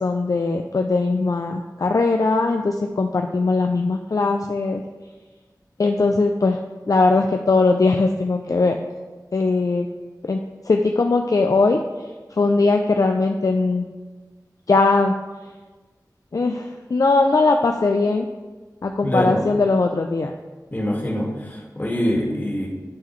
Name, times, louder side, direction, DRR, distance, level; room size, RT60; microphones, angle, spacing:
voice 1, 0.0-4.8 5.8-6.6 6.9-8.8 9.3-9.9 10.2-10.4 10.7-11.8 12.3-13.9 14.7-15.1 16.3-18.3 18.8-20.3, left 3 dB, 55° left, 4 dB, 0.4 m, -20 dB
voice 2, 19.0-19.4 20.7-22.7, equal, 25° left, -4 dB, 1.9 m, -24 dB
11.5 x 3.9 x 3.1 m, 1.3 s
wide cardioid pair, 65°, 7 cm